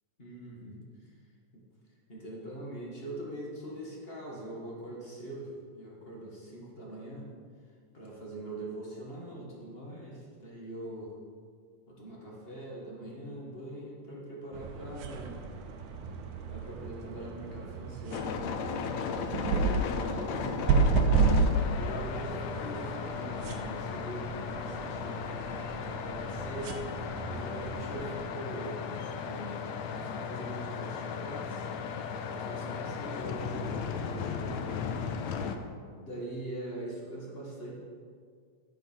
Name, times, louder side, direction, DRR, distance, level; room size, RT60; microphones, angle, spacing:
voice 1, 0.2-0.8 1.5-1.6 2.1-7.3 7.9-11.1 11.9-15.4 16.5-18.4 19.2-21.3 21.7-25.7 26.0-28.8 29.2-31.7 32.3-35.0 35.9-37.7, right 1 dB, 30° left, -3 dB, 1.1 m, -42 dB
sound 1, 14.5-28.1, right 4 dB, 80° right, 2.3 m, -32 dB
sound 2, 18.1-35.6, left 6 dB, 75° left, 1.8 m, -36 dB
12.0 x 8.9 x 4.4 m, 2.1 s
omnidirectional pair, 3.6 m